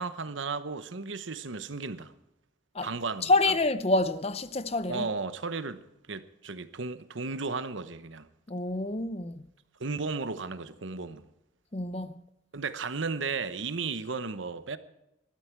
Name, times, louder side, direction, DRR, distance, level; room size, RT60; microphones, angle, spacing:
voice 1, 0.0-2.1 2.8-3.3 4.9-5.8 6.1-8.3 9.8-11.2 12.5-14.8, right 4 dB, 80° right, 1.0 m, -34 dB
voice 2, 3.2-5.1 8.5-9.5 11.7-12.2, left 2 dB, 30° left, 0.7 m, -27 dB
20.5 x 13.5 x 4.6 m
head